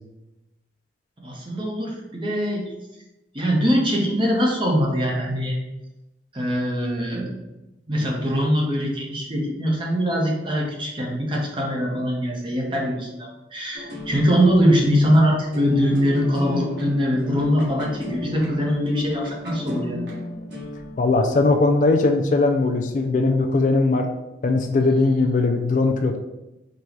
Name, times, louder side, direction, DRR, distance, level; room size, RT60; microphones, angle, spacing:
voice 1, 1.2-2.7 3.3-5.6 6.3-7.3 7.9-20.0, equal, 25° right, -1 dB, 0.8 m, -22 dB
sound 1, 13.7-21.5, left 1 dB, 70° right, 1.3 m, -34 dB
voice 2, 21.0-24.1 24.4-26.2, left 3 dB, 45° left, 5 dB, 0.3 m, -19 dB
4.0 x 2.3 x 4.5 m, 0.98 s
head